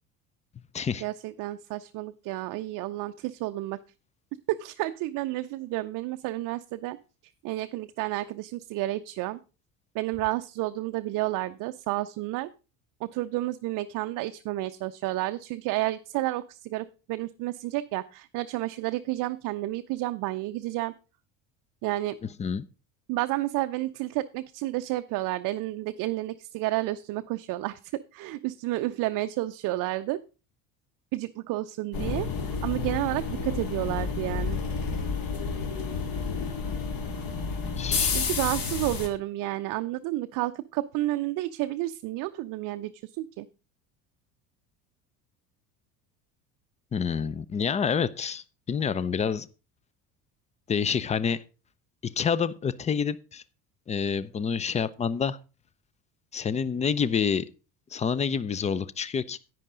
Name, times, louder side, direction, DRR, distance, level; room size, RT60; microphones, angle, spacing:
voice 1, 1.0-3.8 4.5-7.0 7.4-9.4 9.9-12.5 13.0-20.9 21.8-22.2 23.1-27.8 28.1-30.2 31.1-32.3 32.6-34.6 38.1-43.5, right 17 dB, 45° right, 0.6 m, -31 dB
sound 1, 31.9-39.1, left 5 dB, 45° left, 2.1 m, -30 dB
voice 2, 37.8-38.3 46.9-49.5 50.7-51.4 52.0-53.4 53.9-55.4 56.3-57.4 57.9-59.4, left 6 dB, 15° left, 0.4 m, -28 dB
10.5 x 9.1 x 3.7 m
figure-of-eight pair, 65°, 48 cm